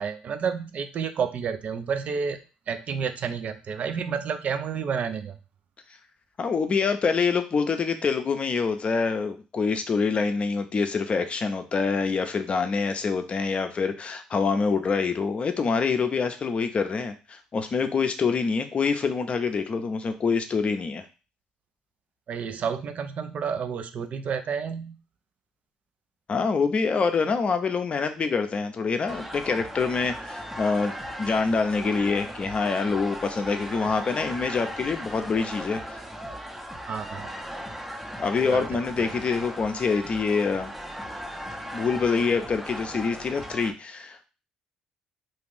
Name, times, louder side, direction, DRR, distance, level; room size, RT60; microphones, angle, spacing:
voice 1, 0.0-2.4 2.7-5.4 22.3-25.0 36.9-37.3 38.4-39.1, right 6 dB, 50° right, 9 dB, 0.4 m, -30 dB
voice 2, 6.4-21.0 26.3-36.0 38.2-40.7 41.7-44.3, left 5 dB, 40° left, 8 dB, 0.5 m, -26 dB
sound 1, 29.1-43.7, equal, 5° right, 0.6 m, -38 dB
2.6 x 2.4 x 3.4 m, 0.32 s
hypercardioid pair, 60°, 3 cm